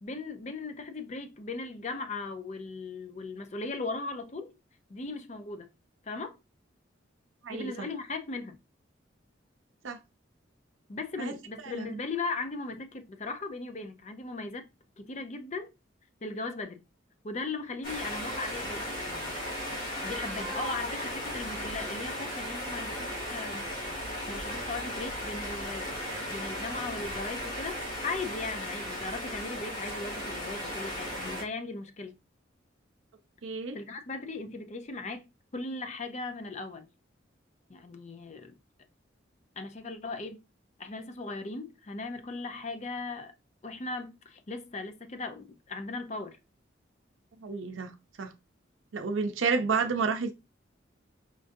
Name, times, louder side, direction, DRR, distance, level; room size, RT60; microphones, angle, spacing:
voice 1, 0.0-4.6 4.9-5.7 6.1-6.4 7.5-8.6 10.9-14.7 15.0-15.7 16.2-16.8 17.2-19.4 20.0-23.7 24.3-25.9 26.3-32.2 33.7-36.9 37.7-38.5 39.6-40.4 40.8-43.3 43.6-46.4, left 3 dB, 35° left, 0.5 m, -38 dB
voice 2, 7.4-7.9 9.8-10.0 11.2-11.3 11.6-12.0 33.4-33.8 47.4-48.3 48.9-50.3, right 5 dB, 85° right, 0.5 m, -31 dB
sound 1, 17.8-31.4, equal, 85° left, 2.0 m, -36 dB
5.1 x 2.5 x 2.6 m
head